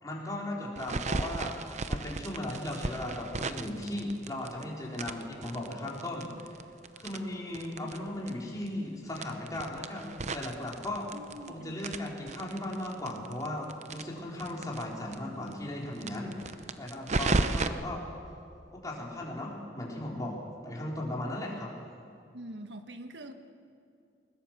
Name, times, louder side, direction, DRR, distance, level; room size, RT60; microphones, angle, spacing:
voice 1, 0.0-1.6 1.9-6.5 7.0-11.1 11.5-18.0 18.7-21.7, left 1 dB, 20° left, -3 dB, 4.0 m, -37 dB
sound 1, 0.8-4.6 4.9-8.0 8.3-8.4 8.6-8.7 9.1-11.5 11.8-14.8 15.1-15.2 15.5-15.6 16.0-17.7, right 3 dB, 40° right, 0.7 m, -34 dB
voice 2, 11.1-11.8 17.4-17.6 22.3-23.3, right 1 dB, 85° right, 7 dB, 1.6 m, -45 dB
21.0 x 19.5 x 7.3 m, 2.4 s
head